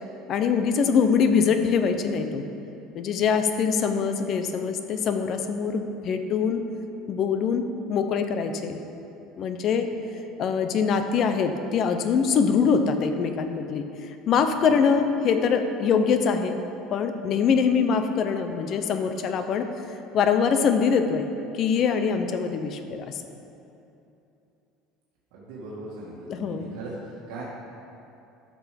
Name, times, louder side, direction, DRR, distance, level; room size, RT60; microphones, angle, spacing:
voice 1, 0.3-2.5 2.9-6.6 7.1-7.6 7.9-8.8 9.4-9.9 10.4-16.5 16.9-21.3 21.5-23.2 26.3-26.7, left 6 dB, 40° left, 8 dB, 0.7 m, -23 dB
voice 2, 25.3-27.4, right 2 dB, 80° right, -7 dB, 2.1 m, -39 dB
13.0 x 6.2 x 5.2 m, 2.9 s
cardioid pair, 160°, 0 cm